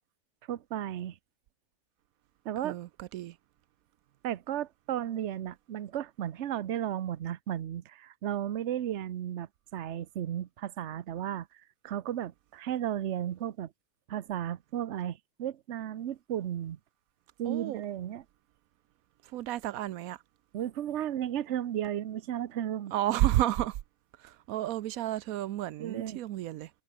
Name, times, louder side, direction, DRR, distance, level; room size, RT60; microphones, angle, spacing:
voice 1, 0.5-1.2 2.4-2.8 4.2-11.5 11.8-13.7 14.1-16.8 17.4-18.2 20.5-22.9 25.8-26.2, right 11 dB, 60° right, 1.0 m, -34 dB
voice 2, 2.6-3.3 17.5-17.8 19.3-20.2 22.9-23.8 24.2-26.7, right 14 dB, 85° right, 1.1 m, -31 dB
omnidirectional pair, 1.5 m